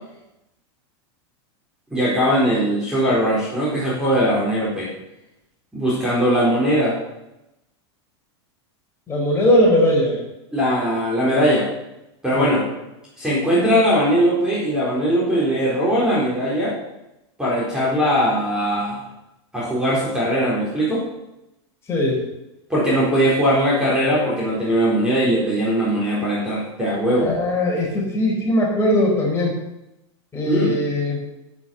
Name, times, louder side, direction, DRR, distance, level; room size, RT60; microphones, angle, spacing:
voice 1, 1.9-4.9 5.7-7.0 10.5-11.7 12.2-12.7 13.2-16.8 17.4-19.0 19.5-21.0 22.7-27.3 30.5-30.8, equal, 5° right, -7 dB, 4.3 m, -20 dB
voice 2, 9.1-10.2 12.3-12.6 21.9-22.2 27.2-29.6 30.3-31.2, left 1 dB, 20° left, -3 dB, 5.3 m, -19 dB
9.2 x 8.9 x 7.0 m, 0.91 s
supercardioid pair, 130°, 14 cm